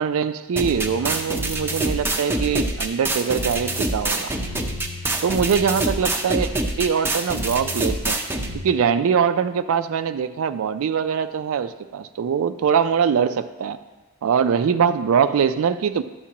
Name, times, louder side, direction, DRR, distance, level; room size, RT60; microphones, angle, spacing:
voice 1, 0.0-4.3 5.2-8.2 8.5-13.8 14.2-16.0, right 7 dB, 65° right, 11 dB, 0.3 m, -22 dB
sound 1, 0.6-8.6, right 2 dB, 10° right, 0.6 m, -26 dB
12.0 x 7.2 x 2.9 m, 1.2 s
head